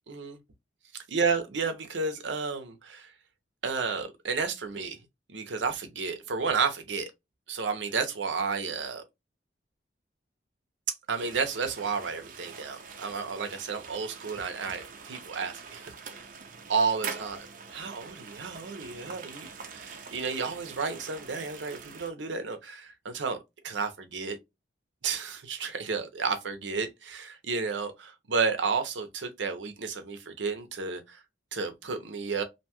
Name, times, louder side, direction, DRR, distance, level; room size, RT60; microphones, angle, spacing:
voice 1, 0.1-0.4 1.1-3.1 3.6-5.0 5.3-7.1 7.5-9.0 11.1-16.2 16.7-17.4 17.7-23.4 23.6-24.4 25.0-31.2 31.5-32.4, right 5 dB, 80° right, 0.7 m, -32 dB
sound 1, 11.2-22.1, right 5 dB, 45° right, 0.5 m, -44 dB
2.7 x 2.2 x 2.8 m
head